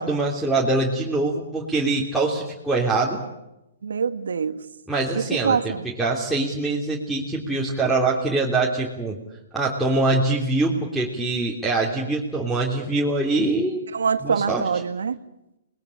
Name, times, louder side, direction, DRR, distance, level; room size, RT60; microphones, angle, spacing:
voice 1, 0.0-3.2 4.9-9.2 9.5-13.8 14.2-14.7, right 2 dB, ahead, -6 dB, 3.4 m, -24 dB
voice 2, 3.8-4.6 5.1-5.8 13.9-15.2, right 6 dB, 75° right, 12 dB, 1.5 m, -24 dB
27.5 x 20.5 x 8.6 m, 0.91 s
hypercardioid pair, 125°, 0 cm